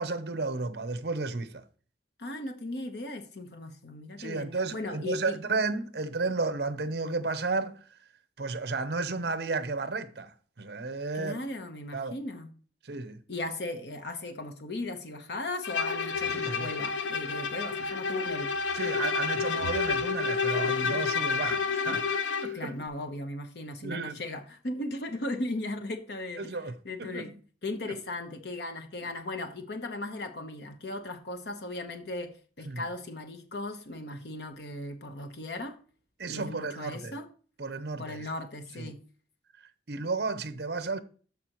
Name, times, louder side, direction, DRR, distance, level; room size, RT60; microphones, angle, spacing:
voice 1, 0.0-1.6 4.2-7.8 8.4-11.4 11.9-12.2 12.8-13.2 16.3-16.7 18.7-22.7 23.8-24.2 26.4-27.2 27.9-28.0 32.7-32.8 36.2-37.2 37.6-38.2 38.8-38.9 39.9-41.0, right 3 dB, 60° right, 0.7 m, -33 dB
voice 2, 2.2-5.4 11.1-12.5 13.3-18.5 22.5-27.3 27.6-35.8 36.3-37.3 38.0-39.0, left 2 dB, 60° left, 1.0 m, -37 dB
Bowed string instrument, 15.6-22.6, left 5 dB, 80° left, 0.6 m, -30 dB
13.0 x 5.1 x 3.0 m
head